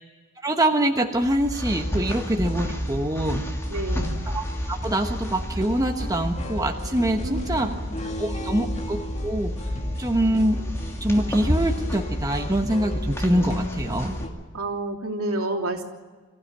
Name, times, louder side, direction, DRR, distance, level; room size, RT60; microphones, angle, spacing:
voice 1, 0.4-3.4 4.3-7.7 8.2-9.5 10.0-10.6 11.0-14.2, right 1 dB, 15° right, 3 dB, 1.2 m, -24 dB
sound 1, 1.2-14.2, equal, 10° left, 2.9 m, -30 dB
sound 2, 1.7-14.3, equal, 30° left, 2.1 m, -39 dB
voice 2, 3.7-4.2 7.2-8.6 14.5-15.8, right 2 dB, 70° right, 1 dB, 3.2 m, -31 dB
25.5 x 15.0 x 10.0 m, 1.4 s
head